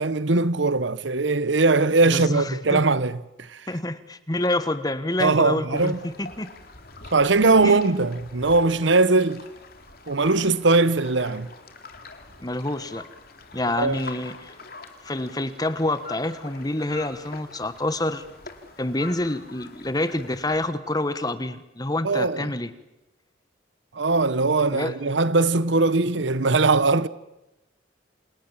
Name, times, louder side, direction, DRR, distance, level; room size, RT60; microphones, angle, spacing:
voice 1, 0.0-3.2 5.2-6.0 7.1-9.4 10.1-11.5 13.8-14.0 22.0-22.5 23.9-27.1, right 3 dB, 75° right, 1.0 m, -20 dB
voice 2, 2.1-2.8 3.7-6.5 7.6-7.8 12.4-13.0 13.5-14.5 15.0-18.2 18.8-22.7 24.7-25.3, left 1 dB, 20° left, 1.4 m, -27 dB
sound 1, 5.7-20.7, left 3 dB, 50° left, 3.1 m, -44 dB
28.0 x 28.0 x 7.3 m
head